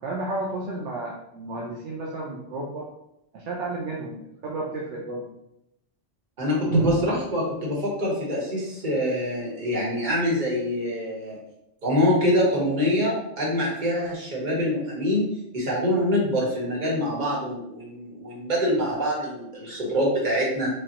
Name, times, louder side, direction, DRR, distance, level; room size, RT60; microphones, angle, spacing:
voice 1, 0.0-2.9 3.3-5.3 6.7-6.9, right 3 dB, 70° right, -3 dB, 0.9 m, -30 dB
voice 2, 6.4-11.4 11.8-20.7, equal, 40° right, -4 dB, 1.2 m, -25 dB
5.0 x 2.3 x 2.9 m, 0.82 s
omnidirectional pair, 1.3 m